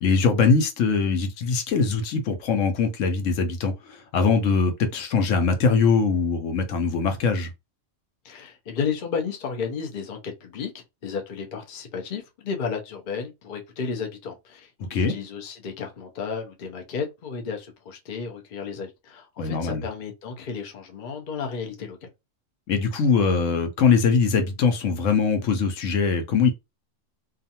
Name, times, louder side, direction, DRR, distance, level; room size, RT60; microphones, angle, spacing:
voice 1, 0.0-7.5 14.9-15.1 19.4-19.9 22.7-26.5, left 5 dB, 75° left, 0.9 m, -22 dB
voice 2, 8.2-22.1, left 6 dB, 50° left, 0.6 m, -33 dB
2.4 x 2.4 x 2.7 m
omnidirectional pair, 1.4 m